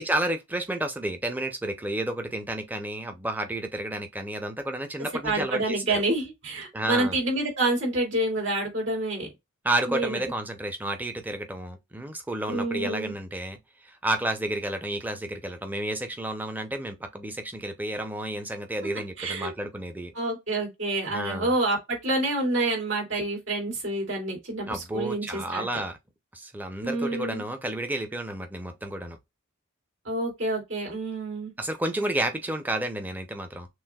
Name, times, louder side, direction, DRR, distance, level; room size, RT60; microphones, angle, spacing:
voice 1, 0.0-6.0 6.7-7.2 9.6-20.1 21.1-21.5 24.7-26.0 26.3-29.2 31.6-33.7, right 1 dB, 10° right, 0.6 m, -31 dB
voice 2, 5.2-9.3 9.9-10.2 12.5-13.1 19.2-19.5 20.1-25.7 26.8-27.4 30.0-31.5, right 2 dB, 60° right, 2.9 m, -28 dB
6.1 x 2.5 x 2.3 m
head